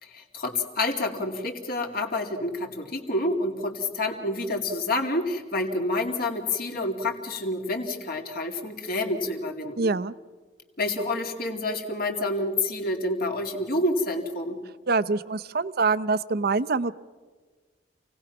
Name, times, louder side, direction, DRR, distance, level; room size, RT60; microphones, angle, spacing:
voice 1, 0.0-9.9 10.8-14.6, left 2 dB, 55° left, 3 dB, 2.5 m, -28 dB
voice 2, 9.8-10.1 14.9-16.9, right 4 dB, 55° right, 14 dB, 0.6 m, -25 dB
27.5 x 18.0 x 5.9 m, 1.4 s
head